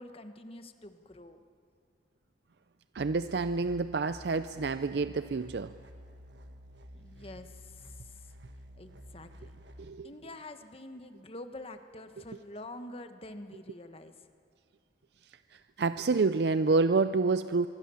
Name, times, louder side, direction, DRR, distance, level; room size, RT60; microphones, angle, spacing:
voice 1, 0.0-1.4 6.9-8.3 8.8-9.6 10.0-14.1, left 2 dB, 35° left, 8 dB, 1.3 m, -46 dB
voice 2, 2.9-5.7 9.8-10.1 15.8-17.7, right 3 dB, 65° right, 12 dB, 0.5 m, -28 dB
sound 1, 2.9-9.9, equal, 80° right, 1.4 m, -51 dB
25.5 x 23.5 x 7.0 m, 2.4 s
head